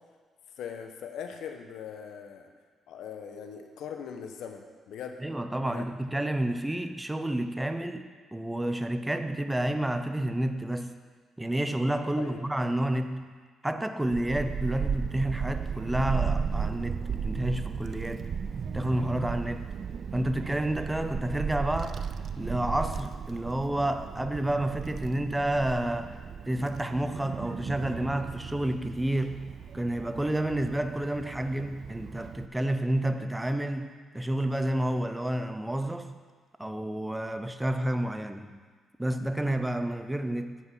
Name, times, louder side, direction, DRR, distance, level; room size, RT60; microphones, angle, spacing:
voice 1, 0.6-2.5 2.9-5.2 5.6-5.9 12.2-12.4 14.3-14.4, left 7 dB, 80° left, 5 dB, 1.0 m, -40 dB
voice 2, 5.2-11.0 11.4-18.3 18.7-19.7 20.1-22.0 22.4-36.2 36.6-38.6 39.0-40.6, right 1 dB, 10° right, 8 dB, 0.7 m, -30 dB
Child speech kid speaking / Wind, 14.1-32.5, right 6 dB, 55° right, 0.4 m, -35 dB
8.5 x 7.9 x 5.6 m, 1.5 s
cardioid pair, 90°, 0 cm